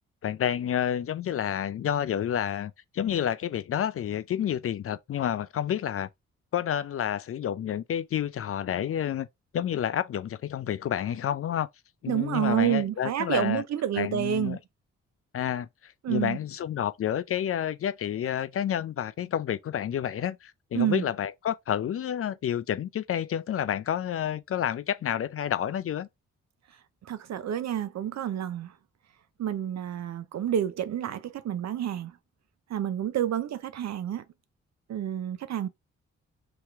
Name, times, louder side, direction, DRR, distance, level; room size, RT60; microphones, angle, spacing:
voice 1, 0.2-6.1 6.5-9.3 9.5-11.7 12.0-13.6 13.9-14.6 15.3-26.1, left 9 dB, 45° left, 0.5 m, -29 dB
voice 2, 12.1-14.6 16.0-16.4 20.7-21.0 27.1-28.7 29.4-32.1 32.7-34.2 34.9-35.7, right 10 dB, 55° right, 0.6 m, -29 dB
3.0 x 2.9 x 3.4 m
hypercardioid pair, 40°, 32 cm